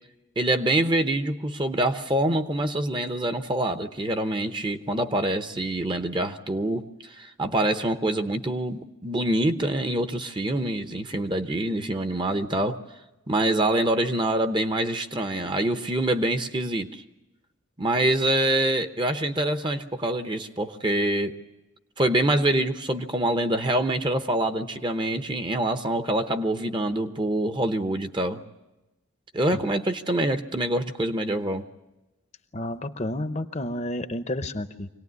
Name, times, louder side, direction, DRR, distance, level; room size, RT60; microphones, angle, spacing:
voice 1, 0.4-12.8 13.3-17.0 17.8-21.4 22.0-28.4 29.3-31.6, right 1 dB, 25° right, 8 dB, 0.9 m, -25 dB
voice 2, 32.5-34.9, left 1 dB, 35° left, 10 dB, 0.8 m, -31 dB
25.0 x 18.5 x 9.5 m, 1.0 s
head